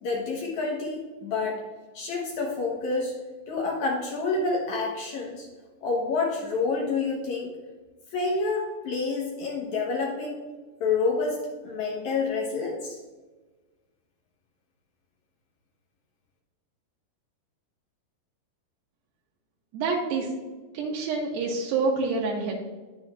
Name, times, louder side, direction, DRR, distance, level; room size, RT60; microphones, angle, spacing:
voice 1, 0.0-1.6 1.9-3.1 3.5-5.5 5.8-7.5 8.1-10.4 10.8-13.0, left 4 dB, 75° left, -2 dB, 1.7 m, -28 dB
voice 2, 19.7-20.3 20.7-22.5, right 4 dB, 85° right, -2 dB, 2.9 m, -27 dB
9.7 x 6.8 x 2.4 m, 1.3 s
omnidirectional pair, 4.7 m